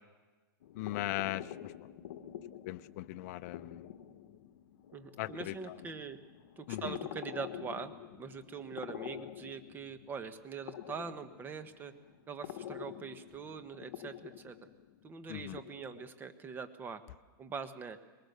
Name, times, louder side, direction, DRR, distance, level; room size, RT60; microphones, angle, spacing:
sound 1, 0.6-16.1, left 11 dB, 65° left, 1.2 m, -47 dB
voice 1, 0.8-1.7 2.7-3.9 5.2-5.5 6.7-6.9 15.3-15.6, left 16 dB, 45° left, 14 dB, 0.6 m, -38 dB
voice 2, 4.9-6.2 6.6-7.9 8.2-11.9 12.3-14.7 15.0-17.0 17.4-18.0, right 5 dB, 15° right, 9 dB, 1.2 m, -43 dB
22.0 x 19.5 x 6.8 m, 1.3 s
supercardioid pair, 150°, 12 cm